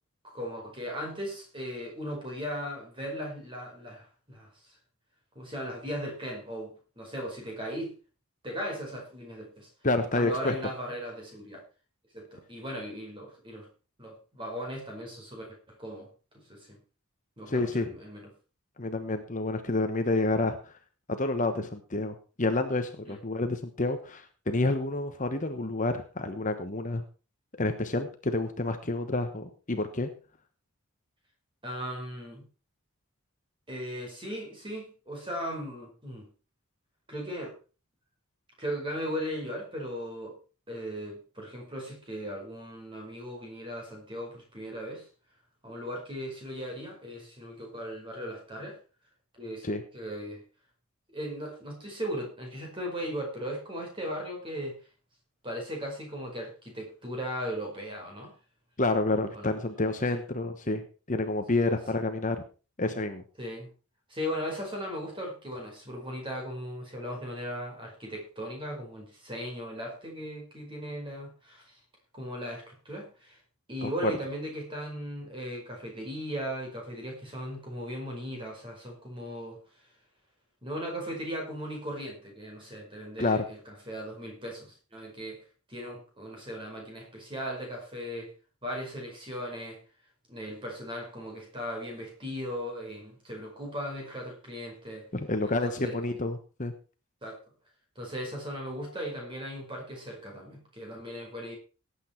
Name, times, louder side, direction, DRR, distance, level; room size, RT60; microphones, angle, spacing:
voice 1, 0.2-4.8 5.4-7.9 8.4-9.7 10.1-11.6 12.1-13.7 14.0-16.1 16.3-16.8 17.4-18.2 23.0-23.2 31.6-32.4 33.7-36.3 37.1-37.6 38.6-40.4 40.7-45.1 45.6-48.8 49.3-49.7 49.9-50.4 51.1-54.8 55.4-58.3 59.3-59.6 60.1-60.2 61.5-61.6 63.4-63.7 64.1-71.8 72.1-73.4 73.7-79.6 80.6-85.4 85.7-88.3 88.6-89.8 90.3-95.1 95.4-96.0 97.2-97.4 98.0-101.6, equal, 25° right, 1 dB, 5.2 m, -37 dB
voice 2, 9.8-10.5 17.5-17.9 18.8-20.7 21.1-27.0 27.6-30.1 49.6-49.8 58.8-60.8 61.1-62.4 62.8-63.2 73.8-74.1 83.2-83.4 95.1-96.7, left 2 dB, 35° left, 7 dB, 1.1 m, -29 dB
17.5 x 8.6 x 4.6 m, 0.35 s
head